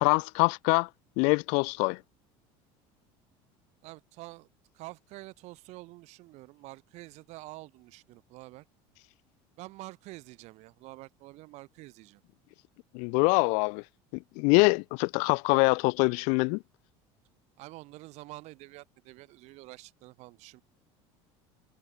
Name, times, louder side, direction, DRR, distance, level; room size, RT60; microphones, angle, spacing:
voice 1, 0.0-0.9 1.2-2.0 12.9-13.8 14.1-16.6, left 35 dB, 70° left, 0.5 m, -24 dB
voice 2, 3.8-4.5 4.7-8.6 9.6-12.2 17.6-20.6, right 20 dB, 65° right, 5.1 m, -47 dB
supercardioid pair, 115°, 13 cm